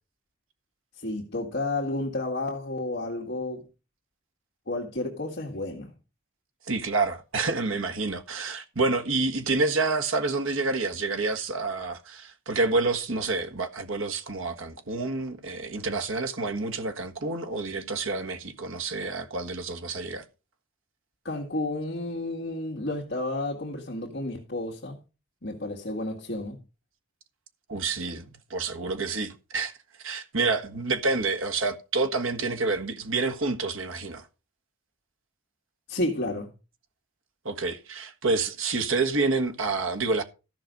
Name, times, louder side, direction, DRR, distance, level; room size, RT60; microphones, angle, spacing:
voice 1, 1.0-3.7 4.7-5.9 21.2-25.0 25.4-26.6 35.9-36.5, left 2 dB, 50° left, 1.9 m, -31 dB
voice 2, 6.6-20.2 27.7-34.3 37.4-40.2, right 3 dB, 70° right, 1.5 m, -28 dB
14.0 x 5.9 x 5.2 m
head